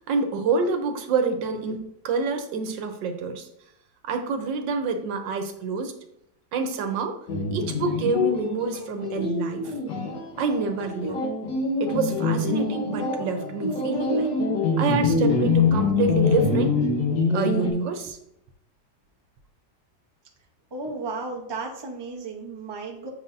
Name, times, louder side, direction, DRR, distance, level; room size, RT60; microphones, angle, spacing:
voice 1, 0.1-3.5 4.0-5.9 6.5-7.2 7.5-9.7 10.4-11.2 11.8-14.3 14.8-16.7 17.3-18.2, right 4 dB, 90° right, 6 dB, 1.5 m, -27 dB
sound 1, 7.3-17.7, left 3 dB, 70° left, 1.8 m, -25 dB
voice 2, 20.7-23.1, right 3 dB, 20° right, 0 dB, 0.7 m, -34 dB
6.9 x 5.8 x 2.6 m, 0.77 s
omnidirectional pair, 1.9 m